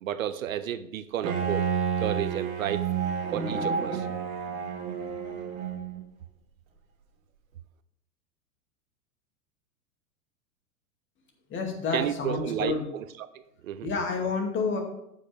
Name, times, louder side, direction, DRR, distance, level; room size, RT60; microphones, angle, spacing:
voice 1, 0.0-1.7 2.0-2.9 3.3-4.1 11.9-13.0 13.6-13.9, right 10 dB, 65° right, 13 dB, 0.7 m, -31 dB
Bowed string instrument, 1.2-6.0, right 6 dB, 50° right, 2.0 m, -30 dB
voice 2, 11.5-12.8 13.8-14.8, left 4 dB, 25° left, 2 dB, 2.3 m, -29 dB
15.0 x 5.6 x 3.4 m, 0.81 s
figure-of-eight pair, 95°, 45 cm